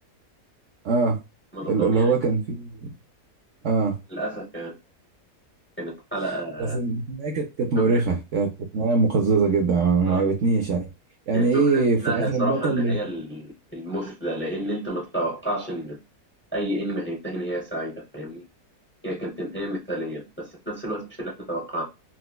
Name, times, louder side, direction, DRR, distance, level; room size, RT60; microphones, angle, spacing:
voice 1, 0.8-1.2 1.7-2.7 3.6-4.0 6.6-10.9 11.3-13.0, right 4 dB, 65° right, 0.8 m, -22 dB
voice 2, 1.5-2.1 4.1-4.7 5.8-6.8 7.7-8.0 10.1-10.2 11.3-16.0 16.5-18.4 19.0-21.8, right 1 dB, 10° left, 0.7 m, -31 dB
4.3 x 2.1 x 2.2 m
omnidirectional pair, 1.7 m